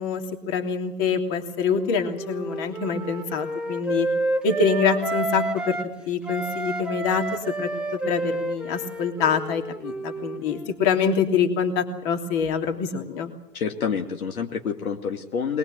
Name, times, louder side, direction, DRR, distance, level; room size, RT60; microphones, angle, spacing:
voice 1, 0.0-4.1 4.4-5.8 6.1-13.3, left 6 dB, 30° left, 5 dB, 3.1 m, -25 dB
Wind instrument woodwind instrument, 1.5-5.9 6.2-10.8, right 2 dB, ahead, 1.1 m, -30 dB
voice 2, 13.5-15.6, left 6 dB, 60° left, 3 dB, 2.5 m, -28 dB
22.0 x 20.5 x 7.7 m, 0.85 s
figure-of-eight pair, 120°, 48 cm